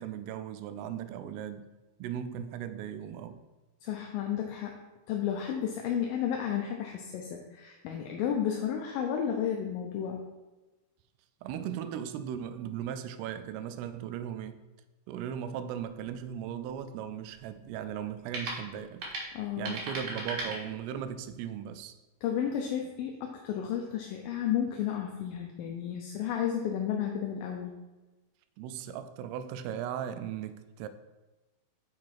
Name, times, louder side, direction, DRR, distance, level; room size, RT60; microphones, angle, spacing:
voice 1, 0.0-1.7 2.0-3.4 11.4-14.6 15.1-19.1 19.6-22.0 28.6-30.9, right 9 dB, 85° right, 11 dB, 2.6 m, -37 dB
voice 2, 3.8-4.8 5.1-10.2 19.3-19.8 22.2-27.7, left 9 dB, 80° left, 2 dB, 2.1 m, -32 dB
sound 1, 15.8-21.2, right 2 dB, 55° right, 2.0 m, -41 dB
7.4 x 5.1 x 4.7 m, 1.1 s
omnidirectional pair, 4.6 m